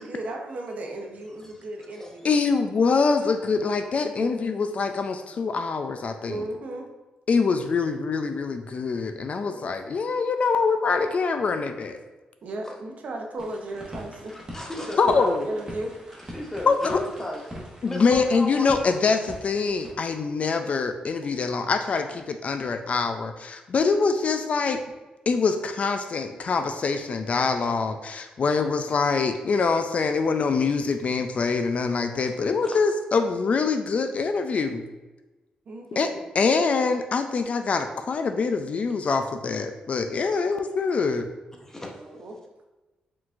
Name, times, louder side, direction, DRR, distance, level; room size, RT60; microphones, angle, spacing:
voice 1, 0.0-2.3 4.0-4.5 6.3-6.9 9.5-9.7 12.4-14.4 14.7-15.9 35.7-36.2 42.0-42.4, right 2 dB, 60° right, 2 dB, 0.7 m, -35 dB
voice 2, 2.2-6.5 7.3-12.0 15.0-15.5 16.7-17.0 17.8-24.8 25.3-34.8 35.9-36.1 36.3-41.3, left 4 dB, 50° left, 7 dB, 0.3 m, -24 dB
sound 1, 13.4-19.9, equal, 25° right, 1.2 m, -43 dB
voice 3, 14.3-15.1 16.3-18.9 32.6-32.8 41.6-41.9, left 1 dB, 15° left, 0 dB, 0.7 m, -35 dB
4.7 x 3.8 x 2.4 m, 1.1 s
cardioid pair, 105°, 3 cm